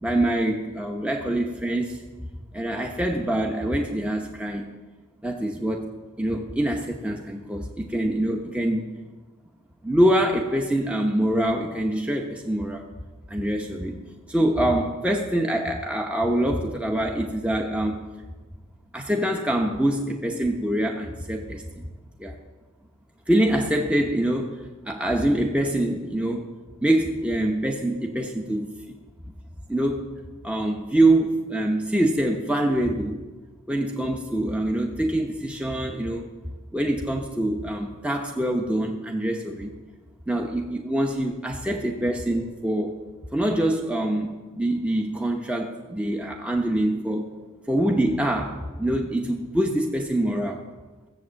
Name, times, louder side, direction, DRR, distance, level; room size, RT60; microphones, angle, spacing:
voice 1, 0.0-2.0 2.5-4.7 5.2-5.9 6.2-8.9 9.8-12.9 13.3-14.0 14.3-18.0 18.9-21.9 22.2-22.4 23.3-26.5 26.8-28.9 29.7-30.1 30.4-33.2 33.7-36.3 36.7-39.7 40.3-42.9 43.3-47.3 47.7-50.6, right 1 dB, 5° right, 1 dB, 0.9 m, -25 dB
15.5 x 7.9 x 7.4 m, 1.3 s
head